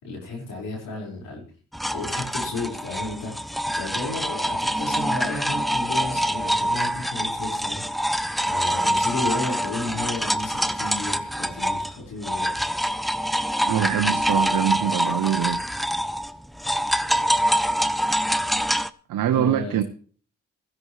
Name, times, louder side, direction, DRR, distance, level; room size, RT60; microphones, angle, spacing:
voice 1, 0.0-1.4 1.9-3.5 3.7-7.8 8.4-12.5 19.3-19.8, left 2 dB, 80° left, 5.0 m, -33 dB
sound 1, 1.7-12.0 12.2-18.9, equal, ahead, 0.6 m, -25 dB
voice 2, 13.7-15.6 19.1-19.8, right 11 dB, 75° right, 0.8 m, -24 dB
16.0 x 14.5 x 3.2 m
supercardioid pair, 50°, 32 cm